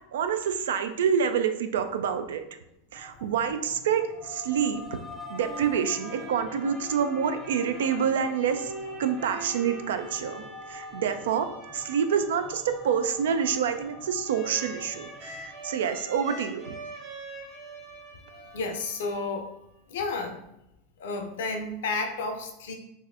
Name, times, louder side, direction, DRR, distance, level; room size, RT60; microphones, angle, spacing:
voice 1, 0.1-2.4 2.9-5.0 5.3-8.7 9.0-16.7, right 7 dB, 80° right, 9 dB, 0.3 m, -27 dB
sound 1, 2.9-16.9, left 3 dB, 15° left, 0.5 m, -46 dB
sound 2, 5.0-19.7, right 2 dB, 40° right, 1.3 m, -44 dB
voice 2, 18.3-19.5 19.9-20.4 21.0-22.7, left 3 dB, 80° left, 4 dB, 0.6 m, -32 dB
4.0 x 2.3 x 2.4 m, 0.86 s
hypercardioid pair, 105°, 0 cm